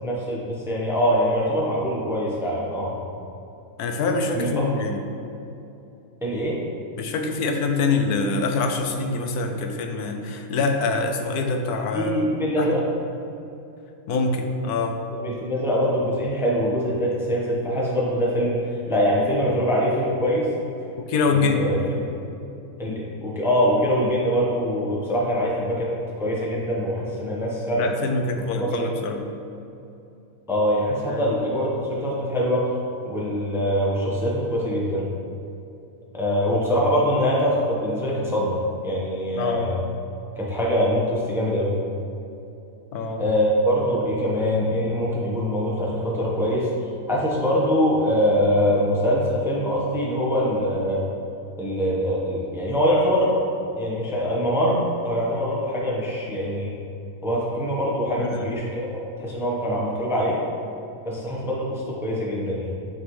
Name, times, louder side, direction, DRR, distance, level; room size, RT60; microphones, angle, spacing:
voice 1, 0.0-3.0 4.3-4.6 6.2-6.6 11.9-12.8 15.2-18.6 18.9-20.5 21.3-21.8 22.1-22.2 22.8-25.9 26.2-27.9 28.7-28.9 30.5-32.7 33.0-35.1 36.1-38.6 38.8-39.8 40.4-41.7 43.2-46.7 47.1-51.1 51.6-53.4 53.8-56.7 57.2-58.9 59.2-60.4 61.0-62.7, equal, ahead, -4 dB, 0.6 m, -23 dB
voice 2, 3.8-5.0 7.0-12.2 12.6-12.8 14.1-14.9 21.1-21.7 27.8-29.3 31.0-31.3 39.3-39.7 42.9-43.2 58.2-58.5, left 3 dB, 90° left, 4 dB, 1.2 m, -25 dB
9.3 x 3.8 x 3.1 m, 2.8 s
omnidirectional pair, 1.6 m